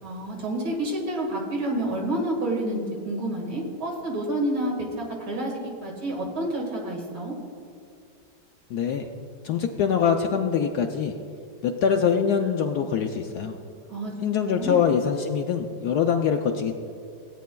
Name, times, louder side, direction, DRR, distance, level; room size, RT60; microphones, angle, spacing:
voice 1, 0.0-5.5 5.8-7.3 13.9-14.1 14.6-14.8, right 1 dB, 85° right, -1 dB, 2.6 m, -29 dB
voice 2, 8.7-9.1 9.4-11.2 11.6-13.6 14.2-16.8, left 7 dB, 75° left, 4 dB, 0.9 m, -24 dB
17.0 x 9.1 x 2.2 m, 2.4 s
omnidirectional pair, 2.1 m